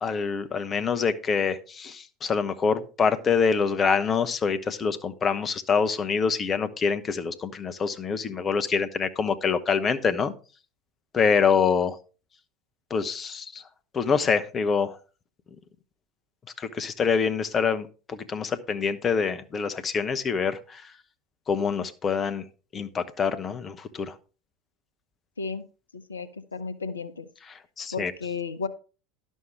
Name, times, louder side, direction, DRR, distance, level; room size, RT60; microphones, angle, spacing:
voice 1, 0.0-10.3 11.1-12.0 12.9-13.6 13.9-15.0 16.6-20.8 21.5-22.4 22.7-24.1 27.8-28.1, left 5 dB, 25° left, 10 dB, 0.9 m, -25 dB
voice 2, 25.9-27.3 27.9-28.7, left 5 dB, 80° left, 15 dB, 0.7 m, -33 dB
11.0 x 6.5 x 4.5 m, 0.35 s
figure-of-eight pair, 75°, 0 cm